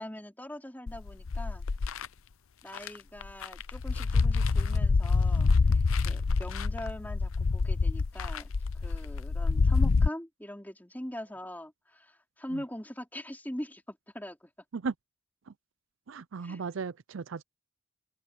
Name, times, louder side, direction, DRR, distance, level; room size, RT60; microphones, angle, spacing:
voice 1, 0.0-1.6 2.6-14.5 16.4-16.6, equal, 10° left, 4.0 m, -42 dB
sound 1, 0.9-2.1 2.8-2.9 3.2-10.1, left 4 dB, 80° left, 0.6 m, -26 dB
voice 2, 16.1-17.4, right 5 dB, 65° right, 0.5 m, -36 dB
open air
head